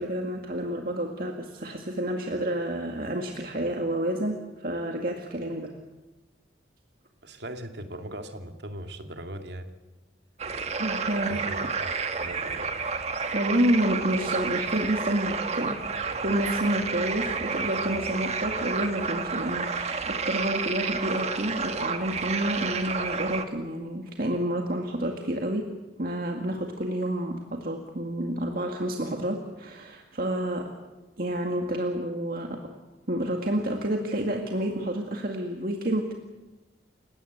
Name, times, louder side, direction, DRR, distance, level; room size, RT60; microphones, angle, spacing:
voice 1, 0.0-5.7 10.8-11.4 13.3-15.9 16.2-25.7 26.0-30.7 31.2-32.6 33.1-36.1, right 1 dB, 55° right, 2 dB, 2.1 m, -29 dB
voice 2, 7.2-9.7 11.3-12.7, right 1 dB, 75° right, 5 dB, 2.4 m, -39 dB
sound 1, 10.4-23.4, right 5 dB, 40° right, 1.6 m, -30 dB
30.0 x 17.5 x 8.1 m, 1.1 s
head